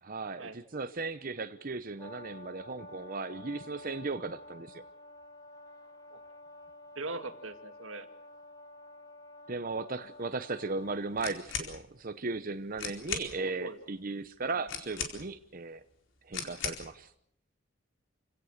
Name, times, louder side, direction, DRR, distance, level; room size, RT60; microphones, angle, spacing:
voice 1, 0.0-4.8 9.5-15.8 16.2-17.1, right 3 dB, 45° right, 9 dB, 0.9 m, -36 dB
Brass instrument, 2.0-11.0, left 1 dB, 20° left, 2.4 m, -50 dB
voice 2, 7.0-8.1 13.4-13.8 14.5-14.7, right 3 dB, 85° right, 8 dB, 2.4 m, -41 dB
sound 1, 11.2-11.7 12.5-12.6 12.8-13.3 14.7-15.4 16.3-16.9, left 6 dB, 75° left, 4.4 m, -37 dB
28.5 x 17.5 x 6.6 m, 0.69 s
head